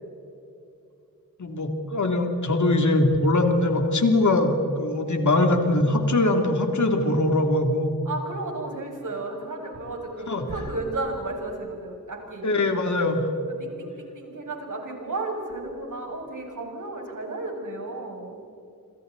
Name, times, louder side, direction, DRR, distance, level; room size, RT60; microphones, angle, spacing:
voice 1, 1.4-8.0 10.3-10.4 12.4-13.3, left 2 dB, 55° left, 4 dB, 3.1 m, -22 dB
voice 2, 8.0-12.5 13.6-18.4, right 2 dB, 60° right, 0 dB, 6.6 m, -33 dB
28.0 x 27.0 x 4.2 m, 2.7 s
cardioid pair, 60°, 34 cm